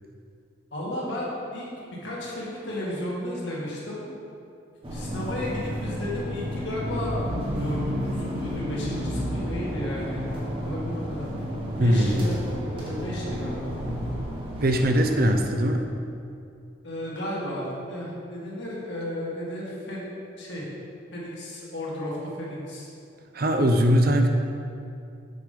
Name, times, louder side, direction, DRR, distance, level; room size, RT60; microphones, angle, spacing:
voice 1, 0.7-1.7 2.0-4.1 4.9-7.2 7.6-11.3 11.8-12.4 12.7-13.8 16.8-20.1 20.4-20.7 21.1-22.9 23.5-23.6, left 1 dB, 65° left, -6 dB, 2.1 m, -33 dB
sound 1, 4.8-15.3, equal, 25° right, 1.3 m, -31 dB
voice 2, 11.8-12.3 14.6-15.9 23.3-24.3, equal, 50° right, 5 dB, 0.6 m, -21 dB
7.8 x 5.2 x 5.2 m, 2.5 s
head